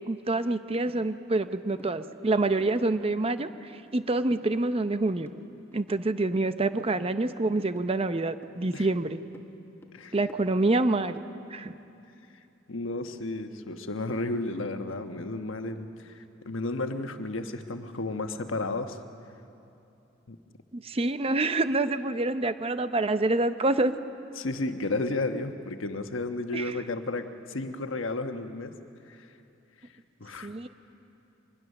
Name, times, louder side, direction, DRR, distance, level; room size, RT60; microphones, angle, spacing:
voice 1, 0.1-5.3 5.7-9.2 10.1-11.2 11.5-11.8 20.7-23.9 26.5-26.8 30.4-30.7, right 2 dB, 30° right, 11 dB, 0.7 m, -27 dB
sound 1, 0.9-1.0 1.3-1.5 1.8-1.9 2.3-3.5 3.9-4.5 4.8-6.5 6.8-8.6 8.9-10.7, equal, 10° left, 1.4 m, -52 dB
voice 2, 12.7-19.0 20.3-20.4 24.4-28.7 29.1-29.3 30.2-30.5, left 2 dB, 90° left, 7 dB, 1.2 m, -33 dB
24.0 x 20.5 x 6.6 m, 2.8 s
head